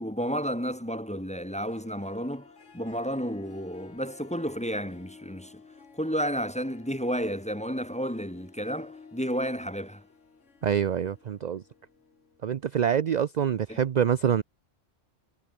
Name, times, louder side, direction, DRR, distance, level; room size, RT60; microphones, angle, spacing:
voice 1, 0.0-2.5 2.7-5.6 5.9-10.0 13.7-13.8, equal, 5° left, 1.2 m, -31 dB
Harp, 1.5-12.7, left 5 dB, 85° left, 2.2 m, -53 dB
voice 2, 10.6-11.6 12.4-14.4, right 8 dB, 50° right, 0.5 m, -26 dB
omnidirectional pair, 1.2 m